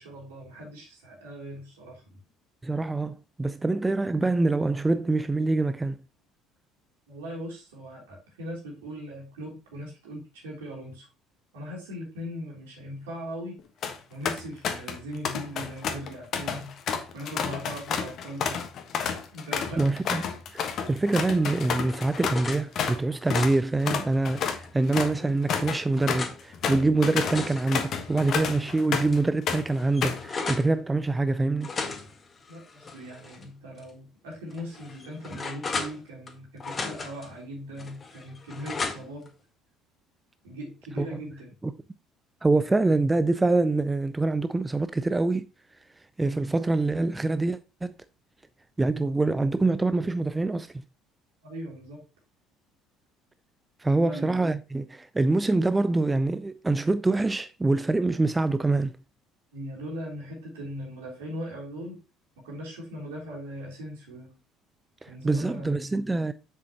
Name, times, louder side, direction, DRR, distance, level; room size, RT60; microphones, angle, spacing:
voice 1, 0.0-2.2 7.1-11.1 11.5-13.5 14.1-18.7 19.3-19.9 32.5-39.3 40.4-41.5 51.4-52.0 53.9-54.5 59.5-62.0 62.4-64.4 65.1-65.7, equal, 70° right, 3.4 m, -39 dB
voice 2, 2.6-6.0 19.8-20.2 20.5-31.7 41.0-41.1 41.6-41.7 42.4-45.5 46.2-48.0 48.8-50.7 53.8-59.0 65.0-66.3, right 2 dB, 15° right, 0.4 m, -25 dB
sound 1, 13.6-14.0 14.3-15.0 15.2-23.0 23.3-23.5 23.8-29.2 29.5-30.3, left 7 dB, 50° left, 1.3 m, -30 dB
sound 2, 21.3-22.6 23.1-24.7 25.3-26.4 27.0-28.7 29.1-29.2 29.5-30.7 31.6-33.4 33.8-33.9 34.5-36.3 36.6-37.3 37.8-39.3, left 4 dB, 30° left, 1.7 m, -37 dB
7.5 x 6.8 x 2.9 m
figure-of-eight pair, 55°, 0 cm